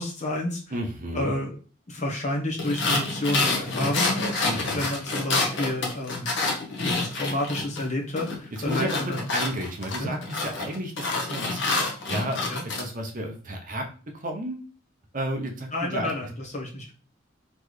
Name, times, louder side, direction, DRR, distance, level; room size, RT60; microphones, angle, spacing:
voice 1, 0.0-0.7 1.1-1.5 1.9-6.4 6.8-9.2 10.0-10.1 12.5-12.6 15.7-16.9, left 1 dB, 35° left, -1 dB, 1.0 m, -30 dB
voice 2, 0.7-1.4 4.4-4.9 8.6-11.6 12.1-13.8 14.1-14.6 15.1-16.1, right 1 dB, 40° right, 3 dB, 0.7 m, -32 dB
sound 1, 2.6-7.9 8.2-12.8, left 3 dB, 60° left, 1.0 m, -28 dB
4.1 x 3.2 x 3.2 m, 0.38 s
head